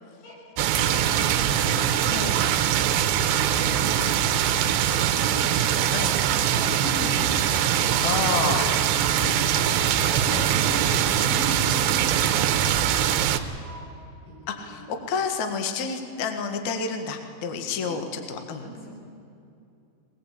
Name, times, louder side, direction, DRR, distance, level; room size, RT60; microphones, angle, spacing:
sound 1, 0.6-13.4, right 10 dB, 80° right, 3.0 m, -22 dB
voice 1, 0.7-2.4 3.1-7.6 9.5-14.9 17.9-18.0 18.6-18.9, left 1 dB, 90° left, -3 dB, 9.3 m, -39 dB
voice 2, 8.0-8.7 9.2-9.4 10.3-10.5 14.5-18.6, left 5 dB, 55° left, 6 dB, 2.3 m, -29 dB
22.5 x 20.0 x 8.4 m, 2.6 s
omnidirectional pair, 5.1 m